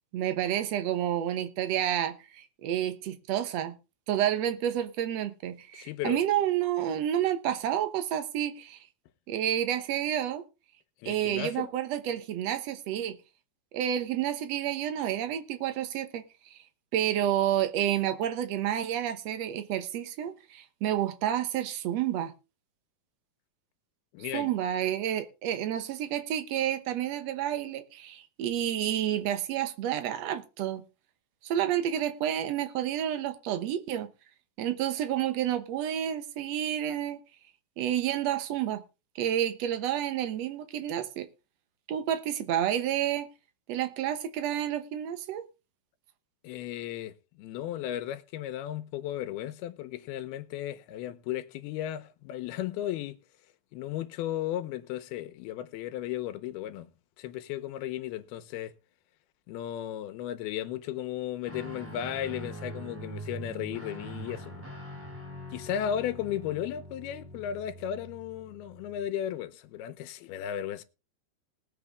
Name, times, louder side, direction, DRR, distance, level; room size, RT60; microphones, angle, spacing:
voice 1, 0.1-3.7 4.1-8.8 9.3-10.4 11.0-13.2 13.7-16.2 16.5-16.6 16.9-22.3 24.3-30.8 31.4-34.1 34.6-37.2 37.8-38.8 39.1-41.3 41.9-43.3 43.7-45.5, right 11 dB, 75° right, 1.6 m, -30 dB
voice 2, 5.7-6.2 11.0-11.7 24.1-24.5 46.4-53.2 53.7-56.9 57.2-58.7 59.5-64.7 65.5-70.8, left 11 dB, 85° left, 2.8 m, -35 dB
Guitar, 61.5-69.1, right 1 dB, 5° right, 2.3 m, -43 dB
19.5 x 7.8 x 3.5 m
omnidirectional pair, 4.4 m